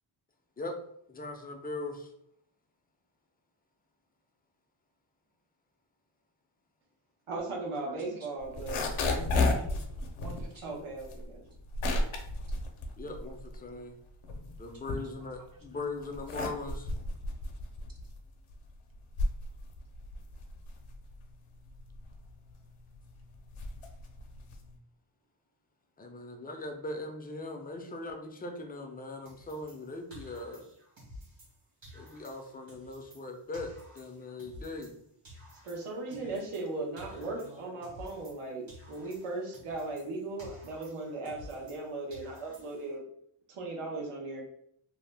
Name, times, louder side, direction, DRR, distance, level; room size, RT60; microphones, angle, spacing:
voice 1, 1.1-2.1 13.0-14.0 14.6-16.9 26.0-30.7 31.9-34.9, left 2 dB, 20° left, 3 dB, 0.3 m, -40 dB
voice 2, 7.3-8.8 10.6-11.4 35.6-43.1 43.5-44.4, right 2 dB, 90° right, -1 dB, 0.9 m, -37 dB
voice 3, 7.9-8.3 8.8-9.8 10.2-10.8 14.7-15.6 16.3-16.4 36.1-36.5 37.2-37.8, right 3 dB, 45° right, 0 dB, 0.5 m, -50 dB
sound 1, 8.4-13.7 14.1-15.5 16.0-24.8, left 2 dB, 75° left, 0.6 m, -33 dB
sound 2, 29.3-31.6 31.8-35.0 35.2-38.4 38.7-41.8 42.1-43.0, equal, 65° right, 1.4 m, -52 dB
2.6 x 2.1 x 3.2 m, 0.70 s
wide cardioid pair, 125°, 49 cm